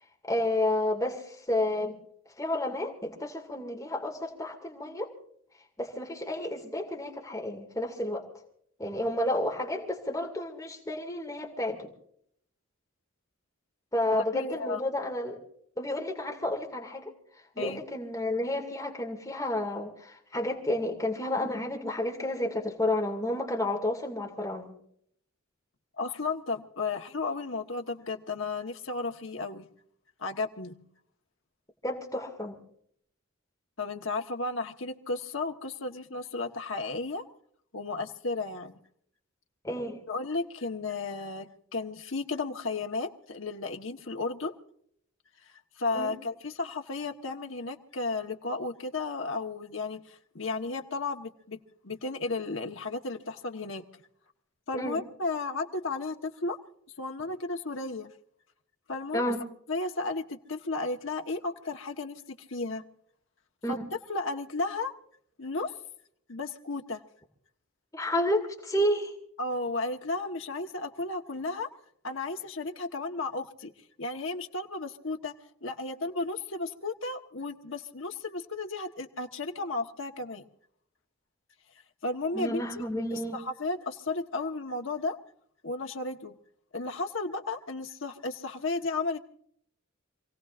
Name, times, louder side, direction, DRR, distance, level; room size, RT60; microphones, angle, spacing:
voice 1, 0.3-2.0 2.4-5.1 5.8-8.2 8.8-11.9 13.9-15.4 15.8-17.1 17.6-24.7 31.8-32.6 39.6-40.0 45.9-46.1 54.7-55.0 59.1-59.4 63.6-63.7 67.9-69.1 82.3-83.4, left 1 dB, 15° left, 1 dB, 2.2 m, -31 dB
voice 2, 14.1-14.8 17.6-17.8 26.0-29.7 30.2-30.8 33.8-37.2 37.7-38.8 40.1-44.5 45.8-51.6 51.8-53.8 54.7-56.6 57.0-58.1 58.9-59.3 59.7-62.2 62.5-62.8 63.7-64.9 65.4-65.7 66.3-67.0 69.4-71.7 72.0-73.7 74.0-75.3 75.6-80.5 82.0-85.2 85.6-86.4 86.7-89.2, left 3 dB, 65° left, 4 dB, 1.3 m, -34 dB
27.5 x 17.5 x 2.5 m, 0.66 s
head